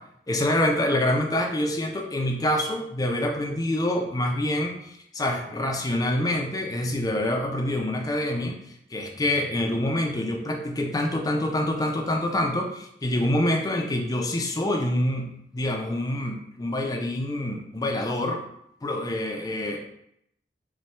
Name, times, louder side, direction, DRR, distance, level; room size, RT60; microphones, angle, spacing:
voice 1, 0.3-8.6 8.9-18.4 18.8-19.8, left 1 dB, 20° left, 2 dB, 0.4 m, -26 dB
4.2 x 2.2 x 3.2 m, 0.75 s
head